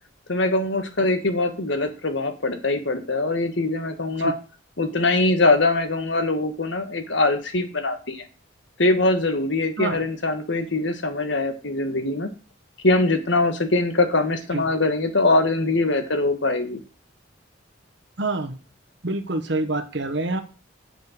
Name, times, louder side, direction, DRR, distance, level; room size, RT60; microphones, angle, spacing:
voice 1, 0.3-4.3 4.8-8.2 8.8-12.3 12.8-16.8, left 2 dB, 65° left, 7 dB, 1.4 m, -22 dB
voice 2, 18.2-18.6 19.0-20.4, right 2 dB, 60° right, 8 dB, 1.2 m, -26 dB
7.1 x 5.2 x 6.5 m, 0.35 s
head